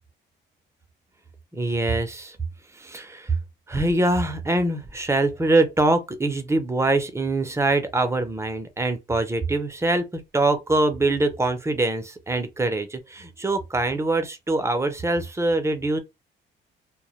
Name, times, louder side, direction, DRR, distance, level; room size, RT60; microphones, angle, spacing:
voice 1, 1.5-2.4 2.8-3.4 3.7-16.0, right 2 dB, 15° right, 0.5 m, -24 dB
2.1 x 2.0 x 2.9 m
cardioid pair, 90°, 20 cm